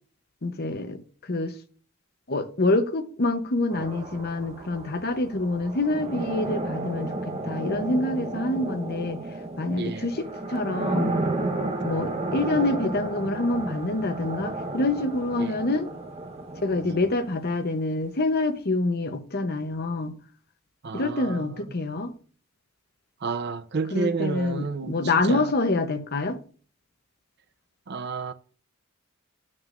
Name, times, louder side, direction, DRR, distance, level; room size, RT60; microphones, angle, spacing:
voice 1, 0.4-1.0 1.3-1.5 2.3-9.2 9.6-11.1 11.8-15.9 16.6-20.1 20.9-22.1 23.9-26.4, left 2 dB, 50° left, 0.9 m, -26 dB
sound 1, 3.7-17.5, right 2 dB, 30° right, 1.2 m, -32 dB
voice 2, 9.8-10.1 15.4-15.6 16.8-17.0 20.8-21.8 23.2-25.5 27.9-28.3, right 4 dB, 55° right, 0.6 m, -31 dB
9.5 x 9.1 x 2.6 m
head